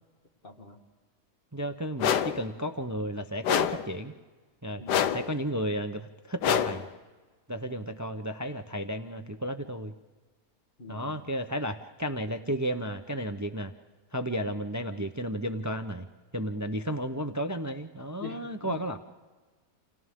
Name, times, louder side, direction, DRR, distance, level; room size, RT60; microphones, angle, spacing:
voice 1, 0.4-0.8 4.8-5.2 10.8-11.2 18.2-18.8, left 4 dB, 35° left, 4 dB, 1.9 m, -43 dB
voice 2, 1.5-4.1 4.6-6.9 7.5-9.9 10.9-13.7 14.1-16.1 16.3-19.0, equal, 25° right, 8 dB, 0.4 m, -33 dB
sound 1, 2.0-2.5 3.4-3.9 4.9-5.4 6.4-6.9, left 9 dB, 80° left, 1.4 m, -26 dB
29.5 x 28.0 x 3.7 m, 1.3 s
omnidirectional pair, 1.8 m